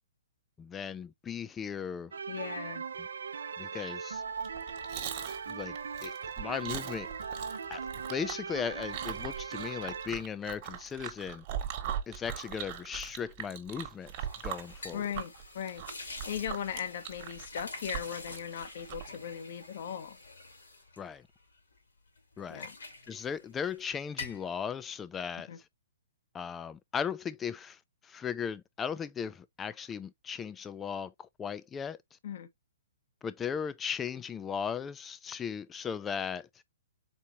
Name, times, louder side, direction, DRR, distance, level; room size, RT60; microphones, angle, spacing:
voice 1, 0.6-2.1 3.0-3.1 3.6-4.2 5.5-5.8 6.0-7.1 7.7-7.8 8.1-11.4 12.1-14.1 14.4-15.0 21.0-21.3 22.4-22.7 23.1-25.5 26.3-32.0 33.2-36.5, left 7 dB, 15° left, 0.4 m, -37 dB
sound 1, 2.1-10.1, right 6 dB, 75° right, 0.5 m, -39 dB
voice 2, 2.3-2.8 14.9-15.8 16.3-20.2 22.5-22.7 25.5-25.6 32.2-32.5, left 8 dB, 55° left, 0.9 m, -38 dB
Chewing mastication, 4.3-19.2, right 10 dB, 40° right, 1.2 m, -41 dB
sound 2, 14.0-21.8 22.2-23.8 24.1-24.5, left 3 dB, 80° left, 2.6 m, -47 dB
4.3 x 3.7 x 2.9 m
hypercardioid pair, 125°, 0 cm